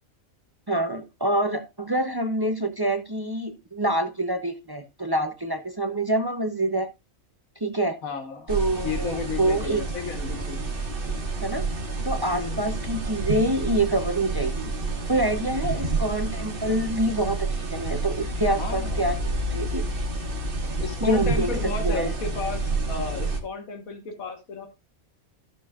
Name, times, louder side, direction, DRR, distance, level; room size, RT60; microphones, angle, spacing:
voice 1, 0.7-6.9 7.6-8.0 8.5-9.8 11.4-11.6 12.0-14.7 15.1-19.8 21.0-21.5 21.8-22.1, right 1 dB, 25° right, 0.5 m, -26 dB
voice 2, 8.0-8.5 8.8-10.6 12.3-12.8 18.6-19.1 20.8-24.7, left 5 dB, 90° left, 1.7 m, -33 dB
sound 1, 8.5-23.4, right 3 dB, 40° right, 1.5 m, -29 dB
15.0 x 6.3 x 2.4 m
omnidirectional pair, 1.4 m